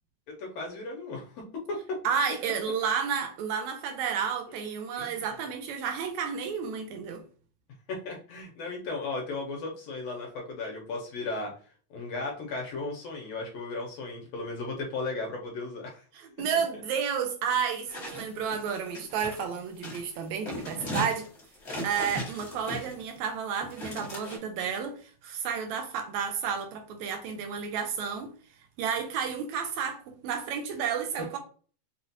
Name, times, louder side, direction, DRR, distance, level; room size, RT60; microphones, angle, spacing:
voice 1, 0.3-2.0 5.0-5.2 7.9-11.5 11.9-16.0 18.3-18.4, left 3 dB, 70° left, 1.8 m, -36 dB
voice 2, 2.0-7.2 16.4-21.3 21.8-28.3 28.8-31.4, right 7 dB, 80° right, 2.0 m, -31 dB
sound 1, 17.9-19.4 19.8-20.1 20.4-23.2 23.6-24.4, equal, 40° left, 1.0 m, -37 dB
5.7 x 2.4 x 2.7 m
omnidirectional pair, 3.3 m